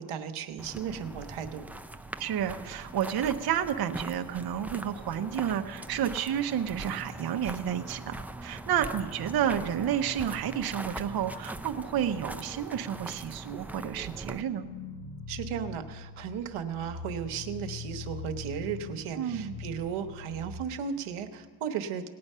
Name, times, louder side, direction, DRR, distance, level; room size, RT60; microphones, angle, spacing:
voice 1, 0.0-1.7 15.3-22.1, right 7 dB, 80° right, 7 dB, 1.1 m, -35 dB
sound 1, 0.6-14.4, right 2 dB, 5° right, 0.4 m, -41 dB
voice 2, 2.2-14.6 19.2-19.6, right 9 dB, 50° right, 6 dB, 0.8 m, -30 dB
sound 2, 14.5-20.6, left 4 dB, 70° left, 1.4 m, -42 dB
18.5 x 8.6 x 5.5 m, 1.4 s
cardioid pair, 90°, 49 cm